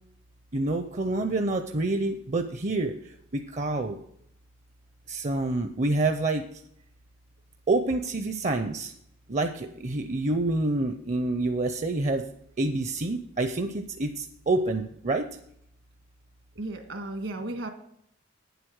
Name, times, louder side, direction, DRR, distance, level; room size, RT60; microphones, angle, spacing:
voice 1, 0.5-4.0 5.1-6.4 7.7-8.9 9.3-12.3 12.6-15.3, right 2 dB, 35° right, 7 dB, 0.6 m, -27 dB
voice 2, 16.6-17.7, right 2 dB, 70° right, 5 dB, 1.8 m, -34 dB
9.2 x 7.9 x 6.4 m, 0.73 s
head